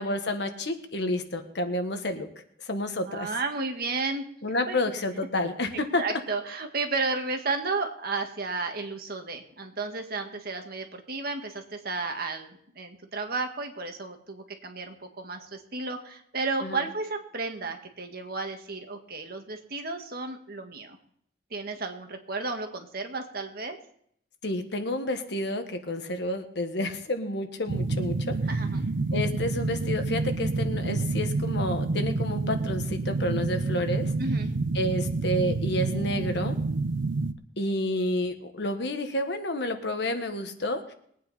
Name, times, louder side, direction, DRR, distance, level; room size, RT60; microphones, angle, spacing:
voice 1, 0.0-2.3 2.6-3.3 4.4-6.0 16.6-16.8 24.4-28.4 29.1-34.1 34.7-36.5 37.6-40.9, left 1 dB, 60° left, 7 dB, 1.5 m, -30 dB
voice 2, 3.1-4.3 4.7-4.9 6.0-21.0 21.5-23.8 28.5-28.9 34.2-34.5, right 3 dB, 55° right, 4 dB, 1.7 m, -33 dB
sound 1, 27.7-37.3, right 3 dB, 85° right, 0.8 m, -28 dB
21.5 x 9.2 x 4.2 m, 0.67 s
head